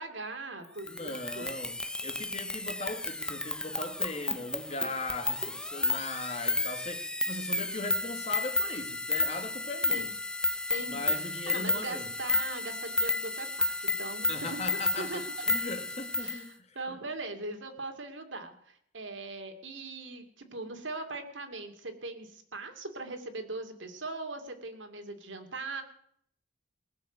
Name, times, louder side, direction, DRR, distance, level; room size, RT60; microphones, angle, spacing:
voice 1, 0.0-1.5 9.9-10.1 10.7-14.7 15.0-15.3 16.2-25.8, right 2 dB, 80° right, 2.5 m, -40 dB
sound 1, 0.8-16.4, left 2 dB, 5° left, 0.6 m, -32 dB
voice 2, 0.9-10.1 10.8-12.1 14.3-17.0, left 2 dB, 35° left, 1.8 m, -39 dB
20.0 x 7.2 x 8.0 m
head